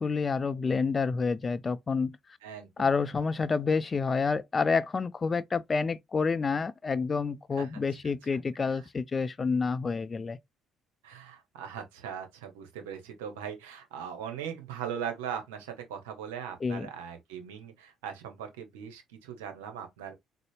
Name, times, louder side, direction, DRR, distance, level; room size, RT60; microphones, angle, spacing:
voice 1, 0.0-2.2 2.8-10.4 16.6-16.9, left 4 dB, 35° left, 0.4 m, -28 dB
voice 2, 2.4-2.9 7.6-7.7 8.0-8.8 11.0-20.1, right 8 dB, 85° right, 0.8 m, -40 dB
4.0 x 2.0 x 3.1 m
hypercardioid pair, 55°, 0 cm